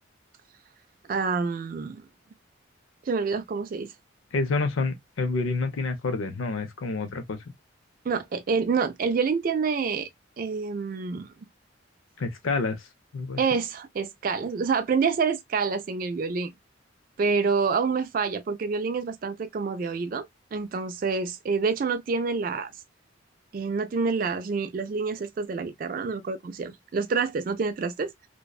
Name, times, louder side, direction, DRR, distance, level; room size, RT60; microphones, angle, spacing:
voice 1, 1.1-2.0 3.1-3.9 8.1-10.1 10.4-11.3 13.4-16.5 17.2-20.3 20.5-22.7 23.5-28.1, right 5 dB, 45° right, 0.3 m, -27 dB
voice 2, 4.3-7.4 12.2-12.9 13.1-13.4, left 3 dB, 90° left, 0.6 m, -28 dB
2.6 x 2.1 x 2.2 m
head